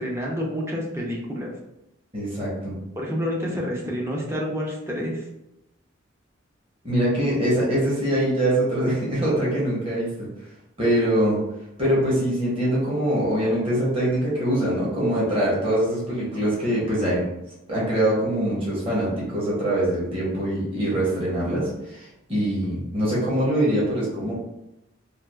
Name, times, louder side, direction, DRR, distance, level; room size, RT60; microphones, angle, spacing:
voice 1, 0.0-1.5 3.0-5.2, equal, 15° right, -2 dB, 0.5 m, -28 dB
voice 2, 2.1-2.8 6.8-10.3 10.8-11.4 11.8-17.3 17.7-24.3, right 1 dB, 30° right, -7 dB, 1.0 m, -23 dB
3.3 x 2.4 x 2.4 m, 0.88 s
head